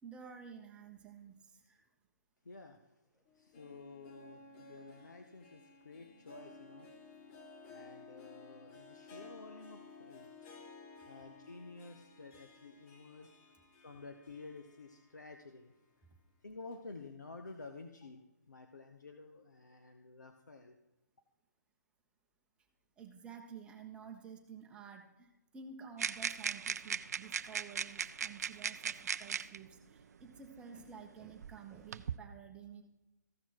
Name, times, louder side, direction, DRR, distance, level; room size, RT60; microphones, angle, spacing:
voice 1, 0.0-1.9 3.1-3.2 23.0-32.8, right 6 dB, 10° right, 3 dB, 1.1 m, -52 dB
voice 2, 2.4-2.8 3.3-6.9 7.6-10.5 11.1-13.3 13.8-15.7 16.4-18.2 18.5-20.8, left 3 dB, 85° left, 5 dB, 0.9 m, -51 dB
Harp, 3.3-15.4 15.8-15.9 16.7-16.8, left 3 dB, 30° left, 1.3 m, -56 dB
sound 1, 26.0-29.6 30.6-30.7 31.4-32.2, right 7 dB, 65° right, 0.4 m, -38 dB
14.5 x 6.0 x 4.6 m, 1.0 s
figure-of-eight pair, 140°, 9 cm